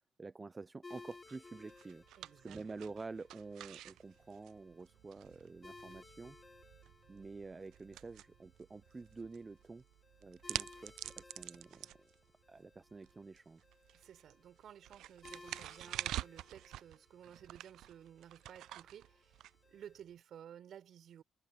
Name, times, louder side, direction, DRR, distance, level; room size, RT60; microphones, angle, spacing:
voice 1, 0.2-2.0 2.4-6.4 7.1-9.8 10.2-12.1 12.5-13.6, right 3 dB, 25° right, 0.7 m, -49 dB
sound 1, 0.8-20.0, left 3 dB, 25° left, 2.2 m, -60 dB
sound 2, 0.9-20.1, right 14 dB, 85° right, 0.4 m, -48 dB
voice 2, 2.2-2.6 13.9-19.4 19.7-21.2, right 9 dB, 65° right, 4.4 m, -55 dB
cardioid pair, 90°, 0 cm